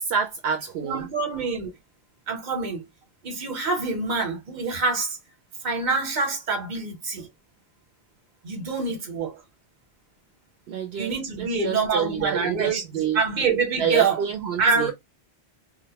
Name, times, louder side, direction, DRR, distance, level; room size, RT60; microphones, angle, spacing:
voice 1, 0.0-1.1 10.7-13.2 13.8-14.9, right 7 dB, 75° right, 0.8 m, -28 dB
voice 2, 0.8-1.7 2.3-2.8 3.2-5.2 5.6-7.3 8.4-9.4 11.0-12.8 13.1-14.2 14.6-14.9, right 4 dB, 50° right, 1.0 m, -25 dB
2.2 x 2.0 x 2.8 m
omnidirectional pair, 1.0 m